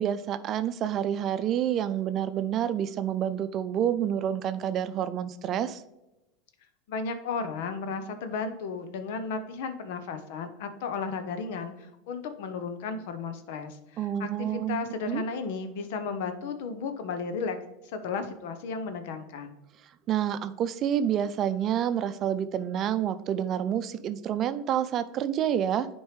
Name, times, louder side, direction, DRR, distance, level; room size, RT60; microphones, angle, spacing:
voice 1, 0.0-5.8 14.0-15.2 20.1-25.9, right 10 dB, 45° right, 12 dB, 0.5 m, -28 dB
voice 2, 6.9-17.6 17.9-19.5, left 4 dB, 70° left, 9 dB, 0.9 m, -34 dB
10.5 x 4.4 x 3.2 m, 0.95 s
hypercardioid pair, 90°, 0 cm